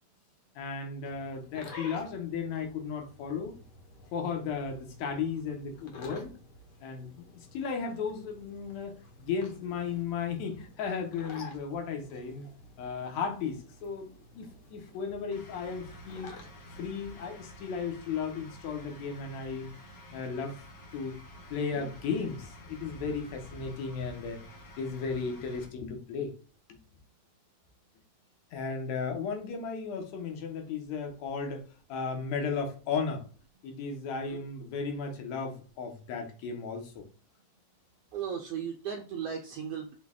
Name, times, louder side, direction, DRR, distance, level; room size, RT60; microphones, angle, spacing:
voice 1, 0.6-3.5 4.1-6.3 6.8-12.5 12.8-16.3 16.8-19.7 20.1-20.6 20.9-21.2 21.5-24.4 24.8-26.3 26.7-26.8 28.5-31.6 31.9-33.3 33.6-37.1, left 5 dB, 75° left, 2.1 m, -35 dB
sound 1, 1.0-17.3, left 2 dB, 90° left, 0.9 m, -51 dB
sound 2, 15.3-25.6, left 1 dB, 50° left, 1.1 m, -50 dB
voice 2, 38.1-39.9, right 8 dB, 85° right, 1.4 m, -36 dB
6.1 x 2.2 x 3.5 m
omnidirectional pair, 3.3 m